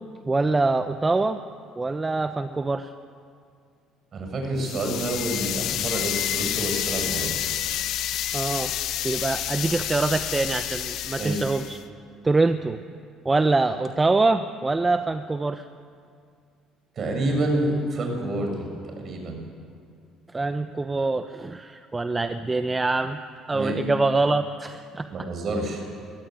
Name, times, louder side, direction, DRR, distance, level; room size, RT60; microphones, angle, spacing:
voice 1, 0.2-1.4 1.8-2.9 8.3-8.7 9.0-11.8 12.2-12.8 13.2-15.6 20.3-23.2 23.5-25.1, right 3 dB, 20° right, 9 dB, 1.0 m, -24 dB
voice 2, 4.1-7.3 11.2-11.4 17.0-19.4 23.5-23.9 25.1-25.8, right 1 dB, 50° right, 3 dB, 7.1 m, -28 dB
sound 1, 4.6-11.8, left 11 dB, 65° left, 1.2 m, -29 dB
22.0 x 16.0 x 9.2 m, 2.3 s
hypercardioid pair, 65°, 0 cm